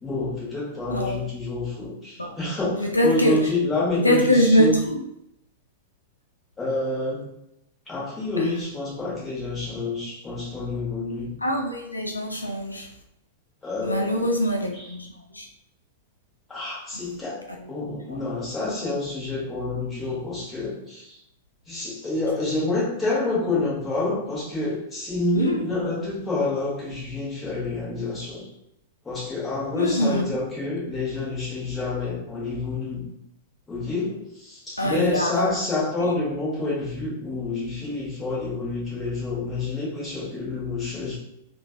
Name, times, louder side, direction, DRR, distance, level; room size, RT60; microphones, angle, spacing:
voice 1, 0.0-4.8 6.6-7.3 7.9-11.4 13.6-14.3 14.8-14.9 16.5-17.4 17.7-21.2 21.7-28.5 29.0-33.1 33.7-41.2, left 2 dB, 15° left, -6 dB, 1.2 m, -28 dB
voice 2, 0.9-1.2 2.2-2.4 2.8-3.5 3.9-5.0 8.4-8.5 11.4-12.9 13.8-15.5 17.8-18.2 25.3-25.7 29.7-30.4 34.8-35.4 36.0-36.1, equal, 85° left, 2 dB, 0.3 m, -23 dB
3.2 x 2.4 x 2.3 m, 0.81 s
figure-of-eight pair, 100°, 0 cm